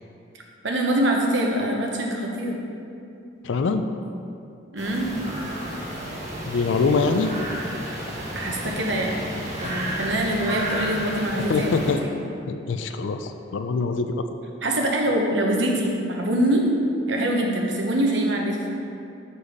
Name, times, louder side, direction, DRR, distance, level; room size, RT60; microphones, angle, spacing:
voice 1, 0.6-2.6 4.7-5.1 8.3-9.1 9.6-11.8 14.6-16.6 17.1-18.6, right 1 dB, 65° right, 0 dB, 1.0 m, -24 dB
voice 2, 3.4-3.9 6.5-7.3 11.5-12.0 12.5-14.2, left 4 dB, 75° left, 7 dB, 0.4 m, -24 dB
sound 1, 4.8-11.9, equal, 40° right, 1.5 m, -32 dB
7.0 x 4.2 x 4.9 m, 2.6 s
head